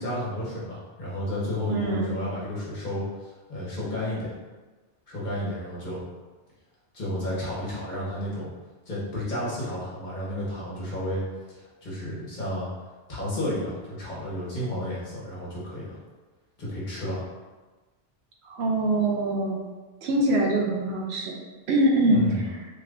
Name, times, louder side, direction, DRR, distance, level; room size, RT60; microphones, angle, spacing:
voice 1, 0.0-4.3 5.1-6.0 6.9-8.5 8.9-11.2 11.8-12.7 13.1-16.0 16.6-17.3 22.1-22.4, left 1 dB, 45° left, -8 dB, 1.2 m, -32 dB
voice 2, 1.7-2.2 18.5-19.6 20.0-21.4 21.7-22.5, right 1 dB, 75° right, -1 dB, 0.8 m, -24 dB
3.1 x 2.4 x 3.5 m, 1.2 s
omnidirectional pair, 1.1 m